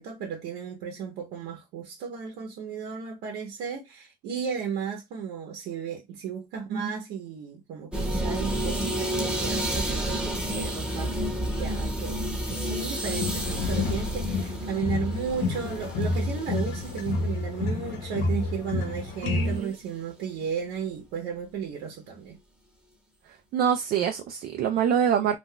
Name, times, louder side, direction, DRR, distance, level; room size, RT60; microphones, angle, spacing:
voice 1, 0.0-10.2 10.5-11.2 11.6-22.4, right 7 dB, 85° right, 0.8 m, -34 dB
sound 1, 7.9-19.0 19.3-19.6, right 1 dB, 5° right, 0.8 m, -31 dB
sound 2, 13.1-19.6, left 3 dB, 80° left, 0.9 m, -29 dB
voice 2, 19.2-19.7 23.5-25.4, right 8 dB, 65° right, 0.4 m, -25 dB
2.5 x 2.2 x 3.7 m
cardioid pair, 110°, 17 cm